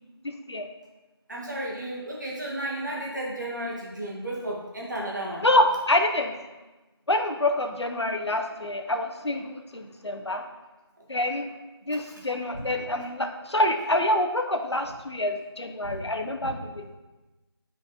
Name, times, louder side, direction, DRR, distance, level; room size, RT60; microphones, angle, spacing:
voice 1, 0.2-0.6 5.4-6.3 7.1-10.5 11.1-11.4 11.9-16.8, left 1 dB, 90° left, 5 dB, 0.7 m, -26 dB
voice 2, 1.3-5.4 12.1-12.2 15.8-16.0 16.4-16.5, right 1 dB, 45° right, -3 dB, 1.3 m, -33 dB
8.7 x 4.0 x 2.8 m, 1.1 s
figure-of-eight pair, 170°, 14 cm